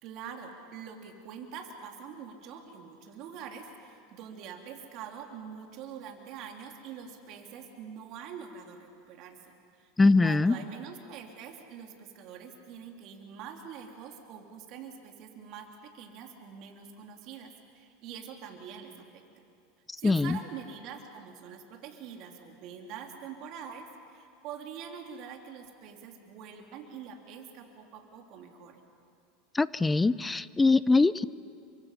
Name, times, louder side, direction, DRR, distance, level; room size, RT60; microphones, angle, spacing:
voice 1, 0.0-9.9 10.2-19.2 20.0-28.8, right 7 dB, 55° right, 3 dB, 3.4 m, -45 dB
voice 2, 10.0-10.5 20.0-20.4 29.5-31.2, left 3 dB, 15° left, 18 dB, 0.6 m, -22 dB
29.0 x 24.5 x 5.8 m, 2.4 s
hypercardioid pair, 90°, 0 cm